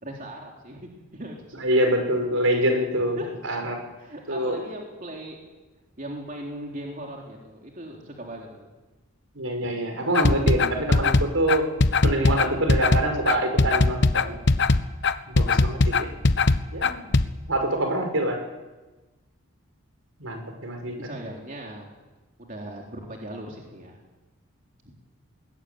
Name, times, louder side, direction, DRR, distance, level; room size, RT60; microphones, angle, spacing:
voice 1, 0.0-1.8 3.2-3.3 4.0-5.4 6.0-8.7 9.6-9.7 15.5-15.8 21.0-21.9 22.4-24.0 24.8-24.9, right 1 dB, 40° right, -1 dB, 3.7 m, -39 dB
voice 2, 1.6-3.2 3.4-3.8 4.3-4.6 9.4-11.7 12.0-14.3 15.3-16.1 16.7-17.1 17.4-18.4 20.2-21.0, right 1 dB, 70° right, 4 dB, 5.8 m, -25 dB
sound 1, 10.1-17.3, left 3 dB, 55° left, 1.1 m, -20 dB
21.5 x 20.0 x 9.8 m, 1.2 s
head